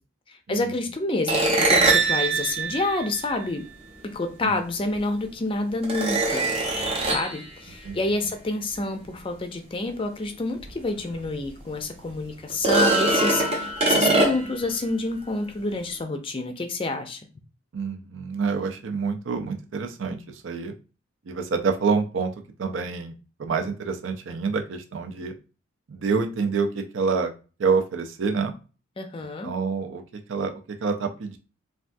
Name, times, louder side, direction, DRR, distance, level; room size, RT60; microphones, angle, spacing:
voice 1, 0.3-3.7 4.0-6.5 7.0-17.2 29.0-29.5, left 2 dB, 25° left, 6 dB, 0.4 m, -28 dB
sound 1, 1.3-3.8 5.0-5.1 5.8-7.4 10.7-10.8 11.2-11.3 12.5-14.6, right 2 dB, 30° right, 0.6 m, -22 dB
voice 2, 17.7-20.7 21.3-22.3 22.6-23.1 23.4-25.3 25.9-27.3 27.6-28.5 29.4-31.4, right 5 dB, 75° right, 5 dB, 0.5 m, -27 dB
3.3 x 2.3 x 2.6 m, 0.34 s
head